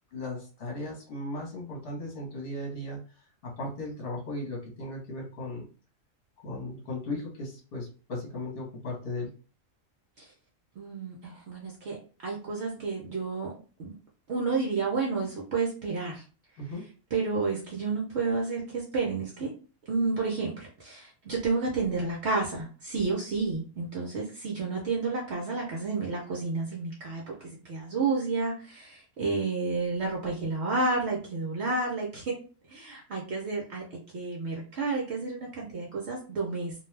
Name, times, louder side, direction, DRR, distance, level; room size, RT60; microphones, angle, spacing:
voice 1, 0.1-3.0 3.4-5.7 6.4-9.3 16.6-16.8, left 2 dB, 45° left, -1 dB, 1.1 m, -36 dB
voice 2, 10.8-13.5 13.8-13.9 14.3-16.2 17.1-19.5 19.9-32.4 32.7-36.7, right 4 dB, 60° right, -2 dB, 0.9 m, -31 dB
2.5 x 2.3 x 3.2 m, 0.36 s
omnidirectional pair, 1.4 m